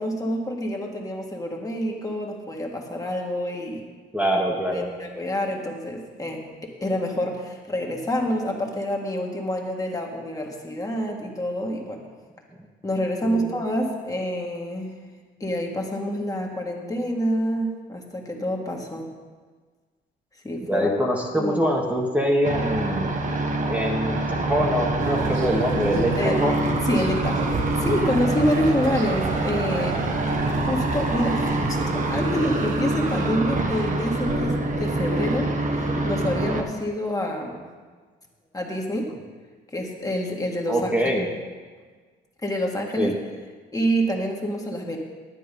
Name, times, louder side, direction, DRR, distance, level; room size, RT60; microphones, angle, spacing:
voice 1, 0.0-3.9 4.7-12.0 12.8-14.9 15.4-19.1 20.4-20.9 21.3-21.6 26.2-26.4 26.9-30.0 30.5-37.7 38.5-39.1 39.7-40.9 42.4-43.2 43.7-45.0, equal, 15° left, 0 dB, 1.8 m, -27 dB
voice 2, 4.1-5.0 13.2-13.5 20.7-23.1 23.7-26.1 26.4-26.5 40.7-41.3 43.0-43.1, equal, 5° right, -2 dB, 1.5 m, -24 dB
sound 1, 22.4-36.6, right 2 dB, 40° right, 1.4 m, -25 dB
sound 2, 25.0-33.3, right 5 dB, 80° right, 1.2 m, -34 dB
10.5 x 9.2 x 5.4 m, 1.5 s
cardioid pair, 90°, 20 cm